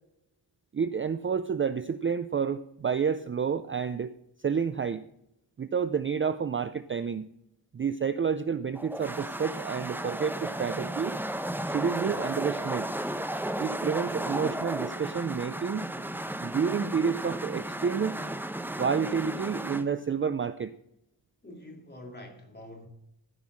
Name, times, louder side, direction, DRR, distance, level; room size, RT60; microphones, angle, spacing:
voice 1, 0.7-4.1 4.4-5.1 5.6-7.3 7.7-11.2 11.6-12.9 13.6-15.9 16.4-18.2 18.8-20.7, right 6 dB, 30° right, 0.4 m, -29 dB
sound 1, 8.7-19.8, right 1 dB, 5° right, 0.8 m, -34 dB
voice 2, 21.4-22.9, left 1 dB, 25° left, 2.9 m, -46 dB
14.5 x 5.6 x 6.2 m
wide cardioid pair, 110°, 41 cm